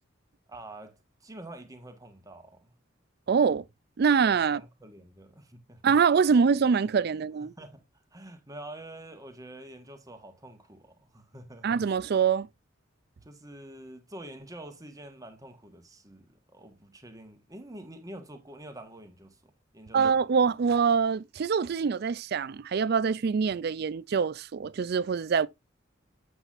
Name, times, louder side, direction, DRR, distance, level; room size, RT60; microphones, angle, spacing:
voice 1, 0.5-2.8 4.4-5.8 7.1-7.9 8.1-11.7 13.2-20.2, right 1 dB, 20° right, 1.5 m, -47 dB
voice 2, 3.3-3.6 4.0-4.6 5.8-7.5 11.6-12.5 19.9-25.5, right 6 dB, 55° right, 0.4 m, -24 dB
8.1 x 7.9 x 2.6 m
head